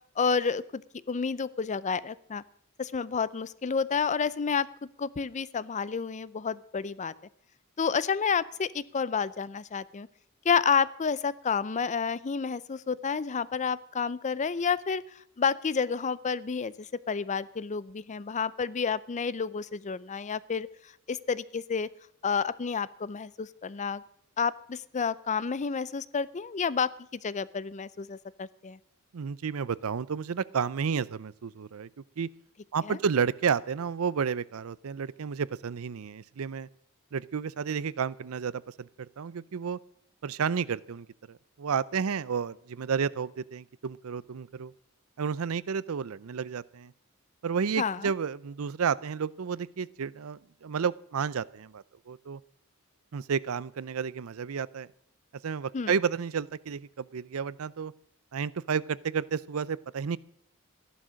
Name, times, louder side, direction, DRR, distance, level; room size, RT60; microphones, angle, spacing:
voice 1, 0.2-0.8 1.1-2.4 2.8-4.7 5.0-7.1 7.8-10.1 10.4-15.0 15.4-20.7 21.1-21.9 22.2-24.0 24.4-28.8 32.9-33.0 47.8-48.1 55.7-55.9, left 6 dB, 35° left, 18 dB, 0.5 m, -30 dB
voice 2, 29.1-31.9 32.2-32.3 32.7-36.7 37.1-39.8 40.2-44.7 45.2-46.9 47.4-52.4 53.1-54.9 55.4-57.9 58.3-60.2, right 6 dB, 75° right, 20 dB, 0.5 m, -31 dB
14.0 x 11.5 x 6.3 m, 0.67 s
head